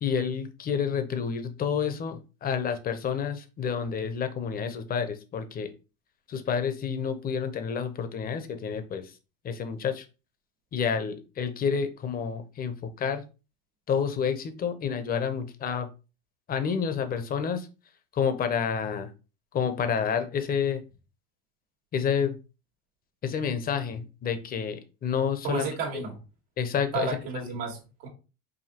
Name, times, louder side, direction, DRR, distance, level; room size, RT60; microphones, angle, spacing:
voice 1, 0.0-5.7 6.3-9.1 9.4-10.0 10.7-13.2 13.9-15.9 16.5-17.7 18.1-19.1 19.5-20.8 21.9-22.4 23.2-25.7 26.6-27.6, left 7 dB, 30° left, 0.7 m, -29 dB
voice 2, 25.4-26.2 26.9-28.1, right 4 dB, 85° right, 1.5 m, -32 dB
4.9 x 2.6 x 2.9 m
supercardioid pair, 110°, 30 cm